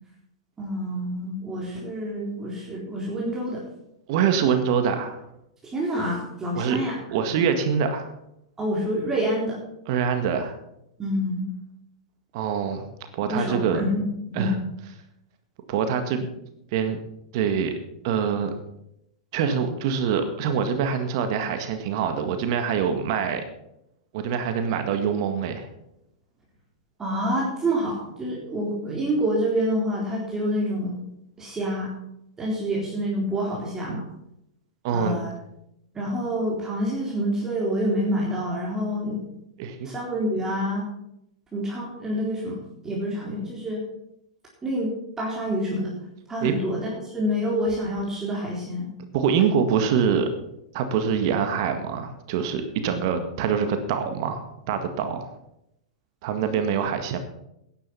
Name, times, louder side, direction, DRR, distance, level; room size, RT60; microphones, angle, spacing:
voice 1, 0.6-3.6 5.6-7.0 8.6-9.6 11.0-11.4 13.2-14.0 14.3-14.5 27.0-31.0 31.4-31.9 32.4-34.0 34.9-35.3 35.9-39.2 39.8-40.8 41.5-42.6 42.8-43.8 44.6-45.9 46.3-48.9, equal, 15° right, -4 dB, 4.0 m, -27 dB
voice 2, 4.1-5.2 6.6-6.8 7.1-8.1 9.9-10.6 12.3-12.9 13.1-13.8 14.3-14.5 15.7-16.3 16.7-17.0 17.3-17.7 18.0-18.5 19.3-23.4 24.1-25.7 34.8-35.2 39.6-39.9 46.4-46.5 49.1-50.3 50.7-55.3 56.2-57.2, right 7 dB, 55° right, 7 dB, 1.8 m, -24 dB
13.5 x 10.5 x 5.7 m, 0.81 s
hypercardioid pair, 105°, 3 cm